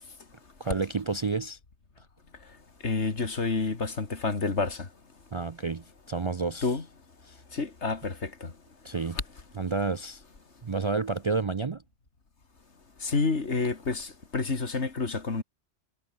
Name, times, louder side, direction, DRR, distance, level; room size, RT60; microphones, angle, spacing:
voice 1, 0.6-1.6 5.3-6.7 7.3-7.4 8.8-9.2 9.6-10.2 10.6-11.8, right 4 dB, 35° right, 0.5 m, -30 dB
voice 2, 2.8-4.9 6.6-6.8 7.5-8.5 13.0-15.4, left 4 dB, 75° left, 2.7 m, -29 dB
omnidirectional pair, 1.2 m